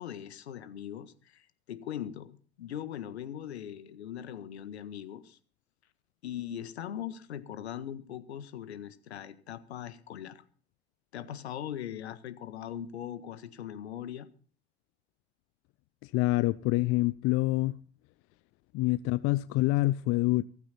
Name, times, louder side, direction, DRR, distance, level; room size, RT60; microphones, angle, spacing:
voice 1, 0.0-5.4 6.2-10.4 11.1-14.3, left 10 dB, 70° left, 1.7 m, -40 dB
voice 2, 16.0-17.8 18.7-20.4, left 19 dB, 45° left, 0.7 m, -26 dB
17.0 x 14.5 x 4.3 m
figure-of-eight pair, 70°, 33 cm